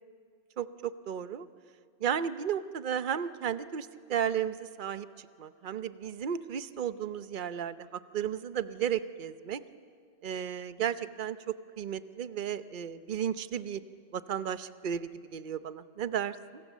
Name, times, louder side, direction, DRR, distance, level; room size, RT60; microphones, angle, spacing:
voice 1, 0.6-1.5 2.0-9.6 10.2-13.8 14.1-16.6, right 9 dB, 50° right, 12 dB, 0.9 m, -34 dB
29.0 x 25.0 x 7.4 m, 2.3 s
omnidirectional pair, 1.1 m